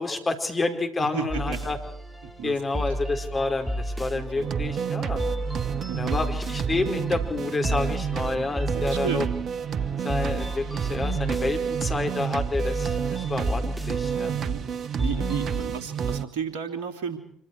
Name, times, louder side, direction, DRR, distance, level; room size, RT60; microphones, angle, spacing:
voice 1, 0.0-1.8 2.4-5.2 6.0-9.3 10.0-14.3, left 3 dB, 30° left, 4 dB, 4.9 m, -29 dB
voice 2, 1.0-1.7 2.2-2.9 4.1-4.5 5.9-6.2 8.7-9.3 14.3-14.6 15.0-17.2, right 7 dB, 70° right, 7 dB, 3.2 m, -33 dB
sound 1, 1.3-15.6, equal, 10° right, 3.4 m, -33 dB
sound 2, 4.4-16.3, right 7 dB, 50° right, 1.2 m, -29 dB
26.5 x 25.0 x 4.8 m, 0.63 s
hypercardioid pair, 55°, 0 cm